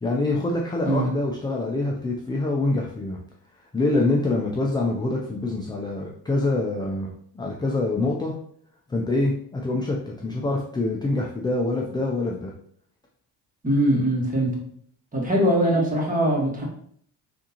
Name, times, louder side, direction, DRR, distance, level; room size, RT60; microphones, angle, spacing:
voice 1, 0.0-3.2 3.7-8.3 8.9-12.5, left 2 dB, 10° left, -1 dB, 0.3 m, -25 dB
voice 2, 13.6-14.5 15.1-16.6, right 1 dB, 15° right, -2 dB, 1.4 m, -21 dB
3.6 x 2.7 x 2.8 m, 0.63 s
supercardioid pair, 70°, 47 cm